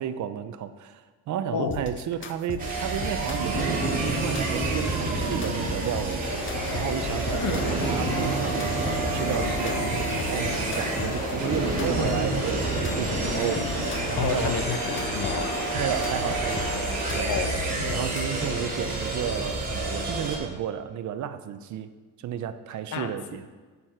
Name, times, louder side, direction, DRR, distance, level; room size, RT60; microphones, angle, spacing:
voice 1, 0.0-14.5 15.7-17.3 17.9-23.5, right 9 dB, 60° right, 11 dB, 0.7 m, -33 dB
sound 1, 1.7-18.7, left 4 dB, 35° left, 0.7 m, -37 dB
sound 2, 2.6-20.4, right 3 dB, 25° right, 2.7 m, -29 dB
sound 3, 6.2-17.3, left 4 dB, 90° left, 1.3 m, -35 dB
voice 2, 7.3-7.7 14.2-15.6 17.3-17.6 22.9-23.1, left 6 dB, 60° left, 8 dB, 1.0 m, -30 dB
8.8 x 8.3 x 4.5 m, 1.4 s
cardioid pair, 110°, 34 cm